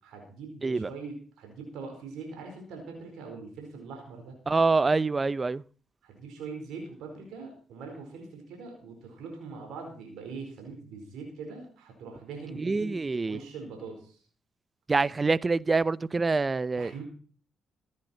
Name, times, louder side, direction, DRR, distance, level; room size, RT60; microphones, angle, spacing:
voice 1, 0.0-4.3 6.0-13.0 13.3-14.2 16.8-17.0, right 4 dB, 80° right, 4.6 m, -42 dB
voice 2, 4.5-5.6 12.5-13.4 14.9-17.0, right 3 dB, 30° right, 0.6 m, -26 dB
15.5 x 11.0 x 4.5 m
supercardioid pair, 65°, 0 cm